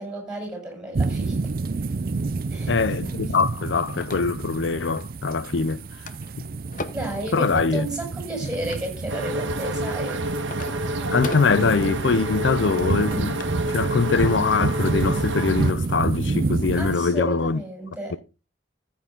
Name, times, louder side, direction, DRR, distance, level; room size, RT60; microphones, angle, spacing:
voice 1, 0.0-1.4 2.5-2.8 6.9-10.2 16.8-18.2, right 1 dB, 5° right, 7.9 m, -32 dB
sound 1, 0.9-17.0, right 3 dB, 50° right, 0.5 m, -28 dB
voice 2, 2.7-5.8 7.3-7.9 11.1-13.4 13.7-17.6, left 4 dB, 75° left, 0.5 m, -23 dB
sound 2, 3.0-4.6 5.0-5.5 5.8-7.2 7.9-8.9 9.5-13.7 14.0-14.2, left 3 dB, 45° left, 0.9 m, -40 dB
sound 3, 9.1-15.7, right 1 dB, 85° right, 1.5 m, -29 dB
14.0 x 8.6 x 3.7 m
head